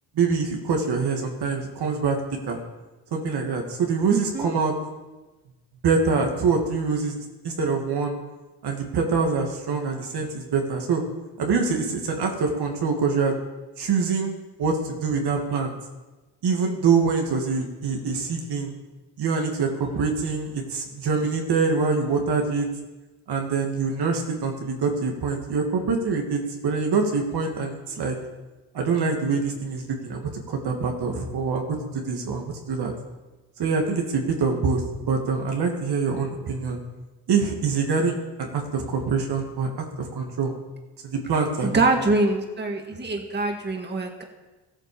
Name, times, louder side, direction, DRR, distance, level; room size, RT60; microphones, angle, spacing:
voice 1, 0.2-2.2 2.5-2.6 3.1-4.7 5.8-7.2 7.4-8.1 8.6-11.0 11.4-13.3 13.8-15.7 16.4-18.7 19.2-22.7 23.3-28.2 28.7-31.8 32.1-32.9 33.6-34.8 35.1-36.8 37.3-38.1 38.4-39.7 40.0-40.5 41.1-41.8, right 5 dB, 65° right, 2 dB, 2.4 m, -25 dB
voice 2, 4.1-4.5 41.6-44.2, right 2 dB, 25° right, 2 dB, 1.8 m, -24 dB
14.5 x 8.9 x 6.9 m, 1.2 s
cardioid pair, 85°, 42 cm